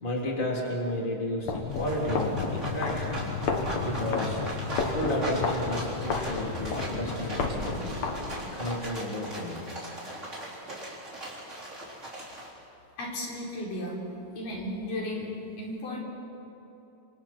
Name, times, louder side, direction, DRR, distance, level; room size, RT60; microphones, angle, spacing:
voice 1, 0.0-3.2 3.8-4.4 4.8-7.9 8.5-9.6, left 1 dB, 15° left, -2 dB, 3.1 m, -32 dB
sound 1, 1.4-8.8, left 4 dB, 60° left, 2.9 m, -32 dB
sound 2, 1.7-12.5, right 1 dB, 20° right, 4.5 m, -39 dB
voice 2, 13.0-14.0 14.4-16.0, left 1 dB, 85° left, -3 dB, 5.8 m, -34 dB
28.0 x 26.5 x 4.4 m, 3.0 s
omnidirectional pair, 3.7 m